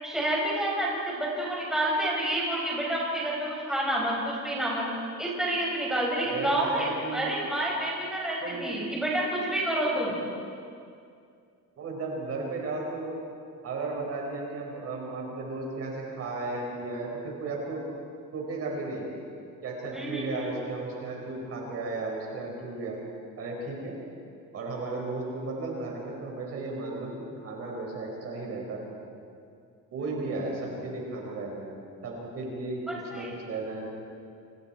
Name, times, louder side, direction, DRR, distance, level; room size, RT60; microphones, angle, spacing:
voice 1, 0.0-4.9 5.2-10.2 19.9-20.3 32.9-33.3, right 1 dB, ahead, -4 dB, 6.0 m, -29 dB
voice 2, 6.2-7.4 8.4-8.7 11.8-13.2 13.6-17.8 18.3-19.1 19.6-23.0 23.4-24.0 24.5-28.8 29.9-31.7 32.0-32.8 33.1-33.9, right 3 dB, 45° right, -1 dB, 5.4 m, -34 dB
29.5 x 27.5 x 4.6 m, 2.4 s
cardioid pair, 165°, 33 cm